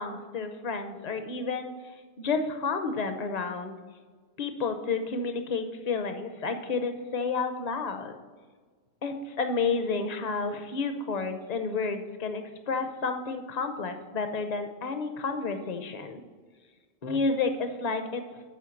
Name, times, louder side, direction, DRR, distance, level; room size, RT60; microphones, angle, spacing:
voice 1, 0.0-1.7 2.2-3.7 4.4-8.2 9.0-16.2 17.0-18.2, left 4 dB, 45° left, 7 dB, 0.8 m, -30 dB
7.6 x 4.5 x 7.1 m, 1.5 s
omnidirectional pair, 1.1 m